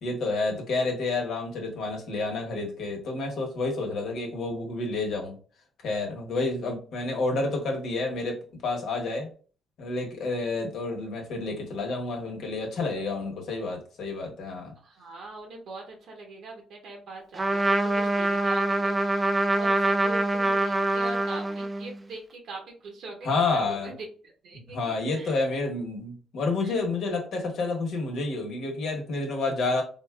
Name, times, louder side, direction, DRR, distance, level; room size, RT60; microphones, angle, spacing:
voice 1, 0.0-5.3 5.8-8.4 8.6-9.3 9.8-14.7 23.2-23.9 24.7-29.8, left 3 dB, 75° left, 0 dB, 1.1 m, -29 dB
voice 2, 14.8-23.9 24.4-25.4 26.6-26.8, right 3 dB, 75° right, 1 dB, 0.9 m, -42 dB
Trumpet, 17.4-21.9, right 2 dB, 20° right, 0.4 m, -25 dB
3.8 x 2.3 x 2.3 m, 0.39 s
cardioid pair, 90°, 0 cm